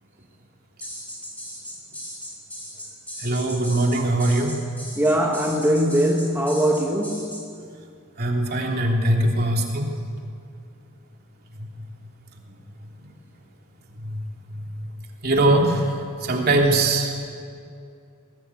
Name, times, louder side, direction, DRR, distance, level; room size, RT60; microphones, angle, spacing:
sound 1, 0.8-7.4, equal, 5° left, 5.4 m, -37 dB
voice 1, 3.2-4.5 8.2-9.9 14.0-14.2 15.2-15.9 16.2-17.1, right 2 dB, 45° right, 1 dB, 3.1 m, -21 dB
voice 2, 5.0-7.4, equal, 10° right, 0 dB, 1.4 m, -21 dB
21.5 x 17.5 x 8.4 m, 2.4 s
head